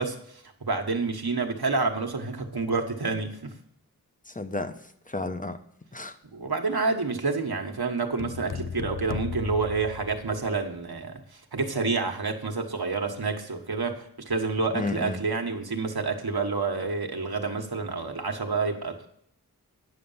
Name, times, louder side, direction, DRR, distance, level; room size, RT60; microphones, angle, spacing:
voice 1, 0.0-3.5 6.2-19.1, right 4 dB, 75° right, 1.4 m, -29 dB
voice 2, 4.3-5.6 5.9-6.2 14.7-15.2, left 2 dB, 20° left, 1.0 m, -32 dB
sound 1, 8.2-10.7, left 7 dB, 60° left, 0.5 m, -36 dB
10.0 x 6.5 x 5.7 m
wide cardioid pair, 50°, 37 cm